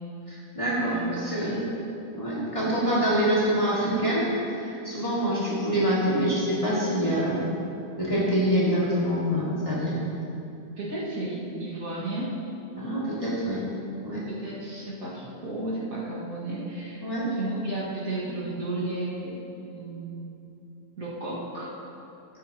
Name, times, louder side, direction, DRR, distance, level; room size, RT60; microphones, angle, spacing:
voice 1, 0.3-1.6 2.1-7.5 8.0-10.0 12.8-13.6 14.0-14.2 17.0-17.3, equal, 20° left, -8 dB, 2.2 m, -25 dB
voice 2, 0.8-1.8 10.8-12.4 14.3-20.3 21.0-21.7, right 2 dB, 60° right, -7 dB, 2.3 m, -33 dB
13.0 x 9.1 x 2.9 m, 2.8 s
omnidirectional pair, 1.6 m